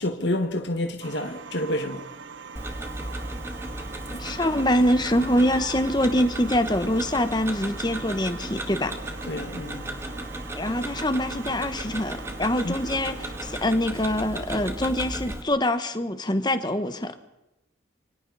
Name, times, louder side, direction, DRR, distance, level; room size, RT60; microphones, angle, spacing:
voice 1, 0.0-2.0 9.2-9.8 12.6-12.8, left 1 dB, 60° left, 1.9 m, -28 dB
sound 1, 1.0-13.7, right 5 dB, 75° right, 0.9 m, -42 dB
Tick-tock, 2.6-15.4, right 1 dB, 15° right, 1.7 m, -35 dB
voice 2, 4.1-8.9 10.5-17.2, left 1 dB, 20° left, 1.2 m, -24 dB
27.5 x 25.0 x 4.2 m
head